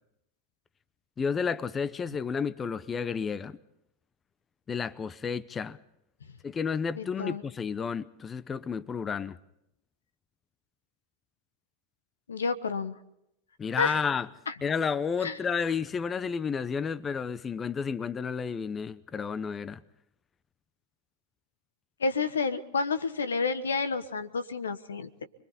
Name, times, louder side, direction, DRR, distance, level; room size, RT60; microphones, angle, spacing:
voice 1, 1.2-3.6 4.7-5.8 6.4-9.4 13.6-14.3 14.6-19.8, left 6 dB, 25° left, 0.7 m, -31 dB
voice 2, 7.0-7.4 12.3-13.0 13.8-14.0 14.5-14.6 15.2-15.4 22.0-25.2, left 4 dB, 85° left, 1.2 m, -30 dB
29.5 x 22.0 x 4.2 m
hypercardioid pair, 100°, 0 cm